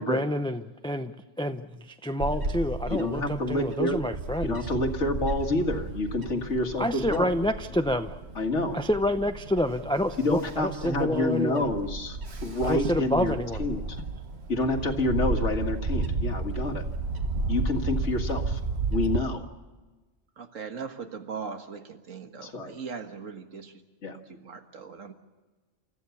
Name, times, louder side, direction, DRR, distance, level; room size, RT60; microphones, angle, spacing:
voice 1, 0.0-4.6 6.8-8.2 8.7-11.7 12.6-13.6, left 1 dB, 5° left, 9 dB, 0.4 m, -28 dB
Bird / Wind, 2.2-19.2, right 3 dB, 60° right, 1.7 m, -33 dB
voice 2, 2.9-4.0 4.4-7.3 8.4-8.8 10.2-14.0 14.5-16.9 17.5-18.6 18.9-19.5 22.4-22.7 24.0-24.2, left 2 dB, 65° left, 5 dB, 2.1 m, -28 dB
voice 3, 20.4-23.7 24.3-25.1, right 5 dB, 90° right, 7 dB, 2.0 m, -39 dB
28.5 x 14.5 x 7.1 m, 1.3 s
omnidirectional pair, 1.3 m